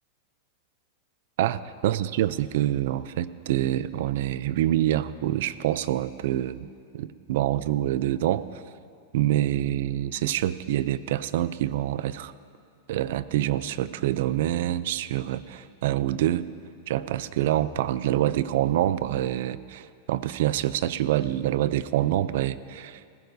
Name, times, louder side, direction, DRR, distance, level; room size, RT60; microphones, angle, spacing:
voice 1, 1.4-8.6 9.1-12.3 12.9-16.4 16.9-23.0, right 13 dB, 60° right, 16 dB, 0.4 m, -26 dB
20.0 x 19.5 x 2.7 m, 2.3 s
supercardioid pair, 170°, 0 cm